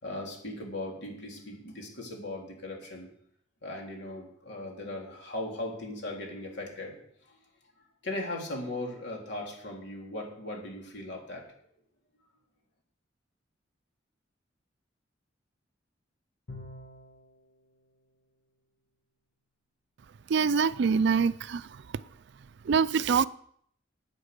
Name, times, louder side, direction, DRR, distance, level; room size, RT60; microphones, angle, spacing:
voice 1, 0.0-3.1 3.6-7.0 7.3-7.4 8.0-11.4, left 1 dB, 65° left, 3.6 m, -38 dB
Bowed string instrument, 16.5-17.4, left 1 dB, 80° left, 1.7 m, -45 dB
voice 2, 20.3-21.7 22.7-23.3, right 5 dB, 65° right, 0.4 m, -24 dB
10.0 x 8.8 x 6.7 m
head